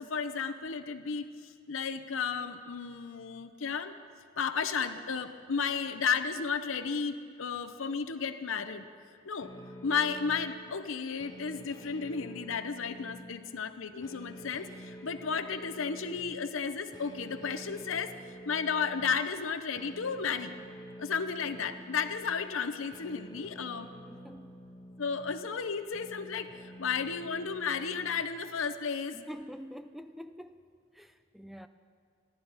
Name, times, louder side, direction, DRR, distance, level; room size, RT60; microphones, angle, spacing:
voice 1, 0.0-4.0 4.4-8.9 9.2-9.5 9.8-18.1 18.4-20.5 21.0-23.9 25.0-29.2, left 6 dB, 85° left, 10 dB, 0.7 m, -33 dB
sound 1, 9.4-28.2, equal, 20° left, 1.2 m, -49 dB
voice 2, 24.1-24.5 29.1-30.6 30.9-31.7, equal, ahead, 9 dB, 0.4 m, -46 dB
29.5 x 11.5 x 4.1 m, 2.2 s
head